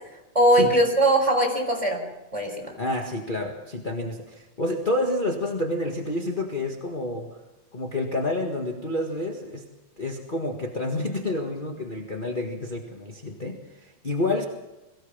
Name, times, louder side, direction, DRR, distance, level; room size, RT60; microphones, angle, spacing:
voice 1, 0.3-2.0 2.3-2.7, right 1 dB, 10° right, 2 dB, 4.2 m, -20 dB
voice 2, 2.8-7.4 7.7-9.6 10.0-14.4, left 1 dB, 25° left, 2 dB, 1.1 m, -29 dB
23.0 x 17.0 x 7.3 m, 1.0 s
omnidirectional pair, 3.6 m